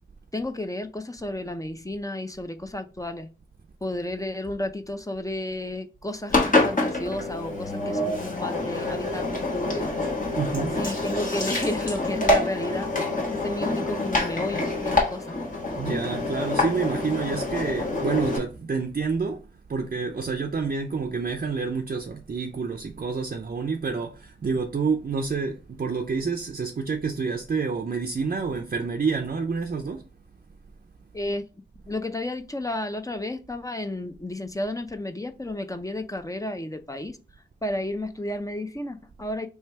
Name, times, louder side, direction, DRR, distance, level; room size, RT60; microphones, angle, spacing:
voice 1, 0.3-3.3 3.8-9.9 10.8-12.9 13.3-15.4 31.1-31.4 31.9-37.2 37.6-39.5, left 1 dB, 15° left, 0.6 m, -32 dB
Engine, 6.3-18.4, left 2 dB, 45° left, 1.3 m, -26 dB
voice 2, 10.4-10.8 15.8-30.1, right 5 dB, 50° right, 0.5 m, -28 dB
3.3 x 3.2 x 4.4 m
wide cardioid pair, 65°, 20 cm